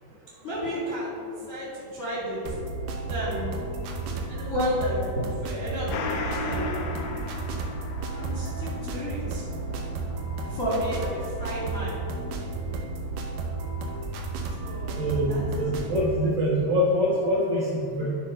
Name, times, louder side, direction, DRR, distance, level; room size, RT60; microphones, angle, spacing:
voice 1, 0.4-1.2 1.5-2.8 3.1-3.5 4.3-6.7 8.1-9.6 10.4-12.0 14.6-15.9, equal, 30° left, -7 dB, 1.4 m, -32 dB
sound 1, 2.5-16.2, right 3 dB, 85° right, 1.9 m, -33 dB
Gong, 5.9-14.9 15.2-15.3, left 3 dB, 90° left, 2.9 m, -39 dB
voice 2, 15.0-18.2, equal, 60° right, -7 dB, 2.4 m, -24 dB
11.0 x 4.3 x 5.5 m, 2.4 s
omnidirectional pair, 5.0 m